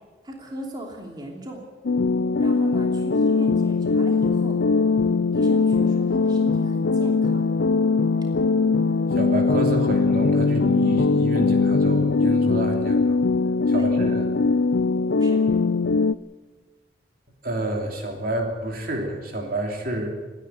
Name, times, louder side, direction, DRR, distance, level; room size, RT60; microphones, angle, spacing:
voice 1, 0.2-1.6 2.4-4.6 5.3-7.5 13.7-13.9 15.1-15.4, right 1 dB, 20° right, 0 dB, 2.9 m, -37 dB
sound 1, 1.8-16.1, left 4 dB, 70° left, 0.5 m, -21 dB
voice 2, 9.1-13.2 13.7-14.2 17.4-20.1, right 1 dB, 50° right, 2 dB, 3.1 m, -29 dB
27.0 x 10.5 x 9.3 m, 1.3 s
head